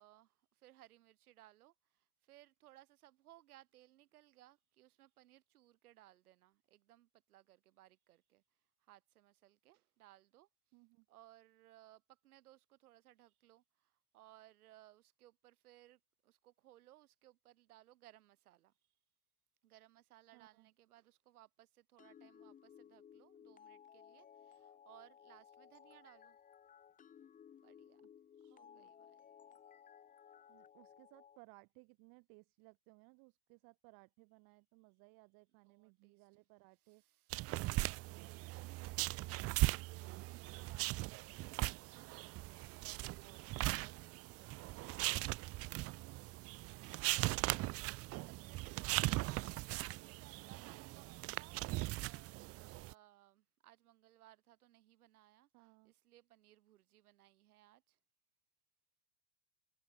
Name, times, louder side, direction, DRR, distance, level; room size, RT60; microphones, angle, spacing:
voice 1, 0.0-8.4 8.8-10.5 11.1-18.7 19.6-26.4 27.6-28.0 28.4-29.6 35.6-36.2 36.9-37.4 42.3-46.1 46.6-58.0, right 14 dB, 85° right, 7.6 m, -64 dB
voice 2, 10.7-11.1 20.3-20.7 28.0-28.1 28.4-28.9 30.5-37.0 37.4-38.7 39.1-41.8 55.5-55.9, right 30 dB, 50° right, 2.6 m, -63 dB
sound 1, 22.0-31.4, left 8 dB, 20° left, 1.1 m, -60 dB
sound 2, 37.3-52.9, right 20 dB, 35° right, 0.7 m, -39 dB
supercardioid pair, 135°, 44 cm